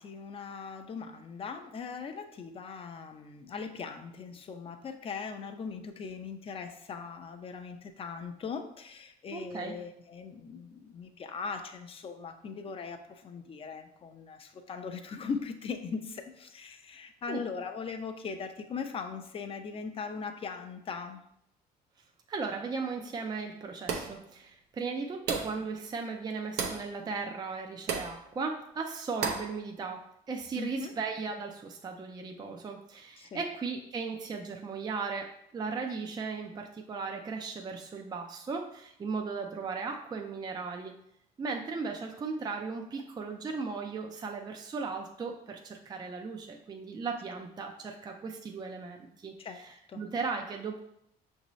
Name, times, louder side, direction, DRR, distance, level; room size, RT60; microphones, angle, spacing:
voice 1, 0.0-21.2 30.6-30.9 33.2-33.4 49.4-50.0, left 5 dB, 35° left, 7 dB, 0.5 m, -40 dB
voice 2, 9.3-9.8 17.3-17.4 22.3-40.9 41.4-50.8, right 4 dB, 25° right, 3 dB, 0.4 m, -37 dB
sound 1, 23.9-24.2 25.3-25.6 26.6-26.9 27.9-28.2 29.2-29.5, right 5 dB, 75° right, 0.7 m, -33 dB
5.9 x 2.7 x 3.0 m, 0.75 s
cardioid pair, 110°, 17 cm